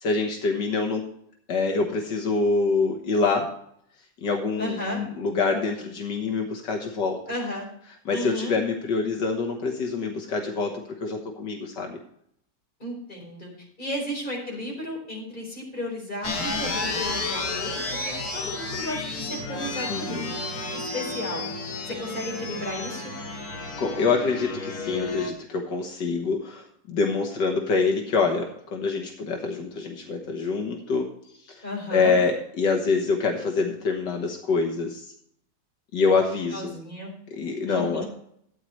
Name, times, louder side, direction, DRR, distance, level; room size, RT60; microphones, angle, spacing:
voice 1, 0.0-1.1 1.5-3.5 4.2-7.2 8.1-12.0 19.9-20.3 23.8-31.1 31.5-31.6 31.9-35.1 35.9-36.7 37.3-38.0, left 4 dB, 80° left, 2 dB, 1.9 m, -25 dB
voice 2, 4.6-5.0 7.3-7.7 8.1-8.5 12.8-20.3 20.7-21.5 21.9-23.1 31.6-32.2 36.5-37.1 37.7-38.1, left 1 dB, 25° left, -2 dB, 4.6 m, -34 dB
sound 1, 16.2-25.3, left 3 dB, 60° left, 2.1 m, -31 dB
13.5 x 9.1 x 3.2 m, 0.69 s
omnidirectional pair, 1.9 m